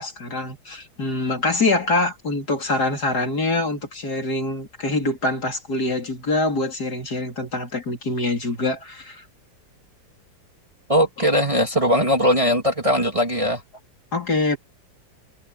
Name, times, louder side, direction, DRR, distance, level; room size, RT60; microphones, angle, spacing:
voice 1, 0.0-9.2 14.1-14.6, left 2 dB, 55° left, 4.2 m, -24 dB
voice 2, 10.9-13.6, equal, 20° right, 2.4 m, -20 dB
omnidirectional pair, 2.0 m